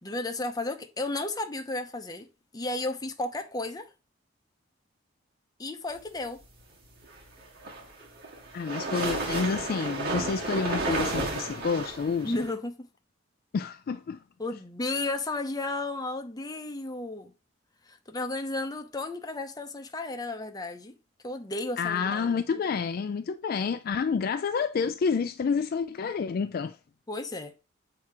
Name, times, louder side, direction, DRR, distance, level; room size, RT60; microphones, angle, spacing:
voice 1, 0.0-2.3 2.5-3.9 5.6-6.4 12.2-12.9 14.4-17.3 17.9-20.9 21.2-22.4 27.1-27.5, left 2 dB, 20° left, 0.7 m, -33 dB
sound 1, 7.4-12.5, right 2 dB, 55° right, 1.7 m, -32 dB
voice 2, 8.5-12.4 13.5-14.2 21.8-26.8, left 5 dB, 50° left, 0.3 m, -29 dB
7.3 x 2.8 x 4.8 m
head